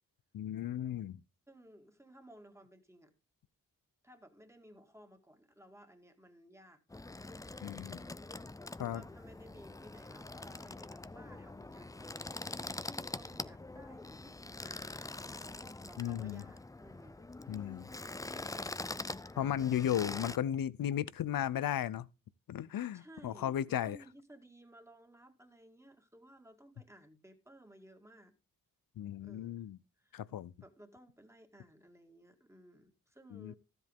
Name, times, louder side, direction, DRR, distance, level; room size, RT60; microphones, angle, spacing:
voice 1, 0.3-1.2 7.6-8.0 8.8-9.0 16.0-16.4 17.5-17.9 19.4-22.1 22.5-24.0 29.0-29.8 30.1-30.5 33.3-33.5, left 10 dB, 75° left, 0.6 m, -35 dB
voice 2, 1.5-3.1 4.0-6.8 8.8-17.9 18.3-19.0 19.3-20.4 20.8-21.1 22.9-28.3 29.2-29.6 30.0-30.2 30.6-33.6, right 1 dB, 10° right, 2.0 m, -58 dB
sound 1, 6.9-20.4, left 2 dB, 10° left, 0.4 m, -44 dB
13.0 x 7.8 x 3.6 m
cardioid pair, 50°, 34 cm